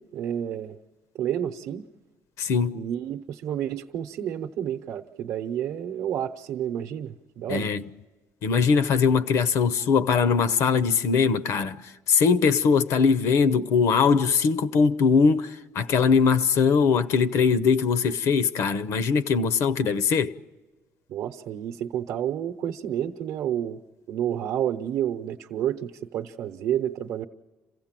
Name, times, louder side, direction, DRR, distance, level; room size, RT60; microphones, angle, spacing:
voice 1, 0.1-0.8 1.2-1.9 2.7-7.7 21.1-23.8 24.1-27.3, right 10 dB, 65° right, 0.8 m, -30 dB
voice 2, 2.4-2.8 7.5-7.8 8.4-20.4, left 5 dB, 60° left, 0.7 m, -21 dB
27.5 x 16.0 x 7.5 m
cardioid pair, 165°, 6 cm